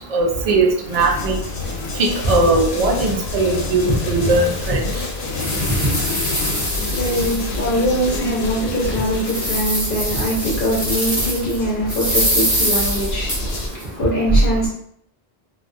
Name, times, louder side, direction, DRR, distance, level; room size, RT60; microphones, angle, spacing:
voice 1, 0.1-1.4 2.0-4.8, right 2 dB, 55° right, 1 dB, 0.4 m, -18 dB
sound 1, 0.8-13.7, left 2 dB, 90° left, 0.8 m, -28 dB
sound 2, 3.7-3.8 4.4-4.5 5.0-7.8 8.3-8.4 8.9-11.6 11.9-13.8, equal, ahead, 0.6 m, -24 dB
voice 2, 6.9-14.7, equal, 60° left, -5 dB, 0.8 m, -22 dB
2.2 x 2.2 x 2.5 m, 0.66 s
omnidirectional pair, 1.0 m